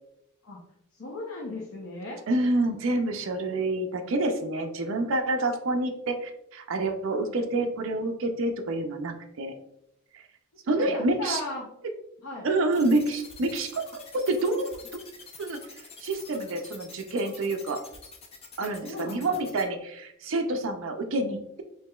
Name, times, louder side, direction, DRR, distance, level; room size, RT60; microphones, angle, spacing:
voice 1, 0.9-2.2 10.8-11.7 12.2-12.5 18.8-19.6, left 2 dB, 65° left, -3 dB, 0.7 m, -37 dB
voice 2, 2.3-9.6 10.7-11.4 12.4-13.8 14.1-14.8 15.4-15.6 16.0-17.8 18.6-21.6, right 2 dB, 60° right, 4 dB, 0.5 m, -27 dB
sound 1, 12.7-19.6, left 4 dB, 25° left, 0.5 m, -46 dB
4.6 x 3.0 x 2.3 m, 0.78 s
head